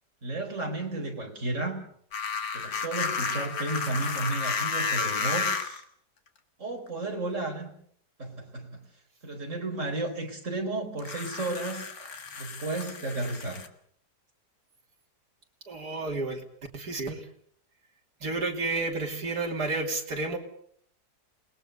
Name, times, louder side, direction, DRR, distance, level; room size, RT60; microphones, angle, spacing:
voice 1, 0.2-1.8 2.5-5.8 6.6-7.7 8.2-8.8 9.2-11.9 12.4-13.6, right 2 dB, 45° right, 2 dB, 4.9 m, -33 dB
sound 1, 2.1-5.8 6.9-7.0 11.0-13.7, left 5 dB, 60° left, 2.2 m, -32 dB
voice 2, 15.7-16.4 16.7-17.3 18.2-20.4, right 3 dB, 65° right, 1 dB, 3.5 m, -31 dB
28.5 x 19.5 x 6.9 m, 0.64 s
omnidirectional pair, 1.8 m